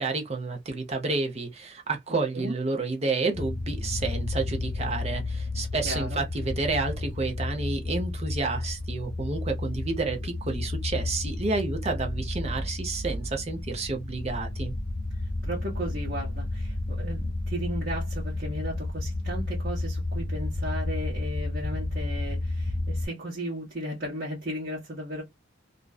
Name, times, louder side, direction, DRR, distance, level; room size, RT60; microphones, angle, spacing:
voice 1, 0.0-14.7, right 3 dB, 30° right, 0.7 m, -30 dB
voice 2, 2.1-2.5 5.8-6.2 15.4-25.2, equal, 50° right, 1.1 m, -35 dB
sound 1, 3.3-23.1, left 2 dB, 40° left, 0.8 m, -32 dB
2.5 x 2.2 x 2.3 m
head